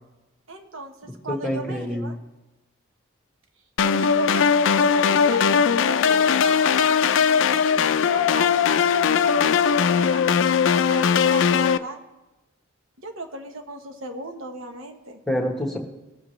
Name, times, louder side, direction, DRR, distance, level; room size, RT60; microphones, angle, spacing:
voice 1, 0.5-2.2 3.8-5.4 5.8-6.9 7.3-10.5 10.9-12.0 13.0-15.2, right 2 dB, 85° right, 5 dB, 1.1 m, -36 dB
voice 2, 1.1-2.2 15.3-15.8, equal, ahead, 2 dB, 1.2 m, -27 dB
sound 1, 3.8-11.8, left 6 dB, 70° left, 0.3 m, -19 dB
20.0 x 7.2 x 3.2 m, 1.0 s
head